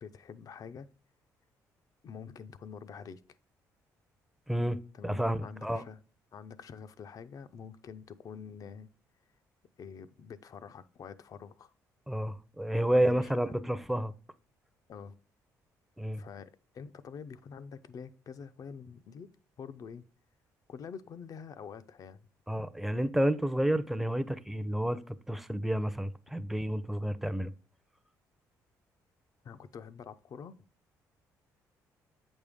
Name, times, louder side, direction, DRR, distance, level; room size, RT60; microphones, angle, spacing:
voice 1, 0.0-0.9 2.0-3.2 4.9-6.0 6.3-8.9 9.8-11.7 12.9-13.6 14.9-15.1 16.1-19.3 19.6-20.1 20.7-22.2 29.4-30.6, left 6 dB, 55° left, 0.6 m, -46 dB
voice 2, 5.0-5.8 12.1-14.1 16.0-16.2 22.5-27.5, right 1 dB, 5° right, 0.6 m, -30 dB
8.1 x 5.3 x 3.6 m
supercardioid pair, 65°, 7 cm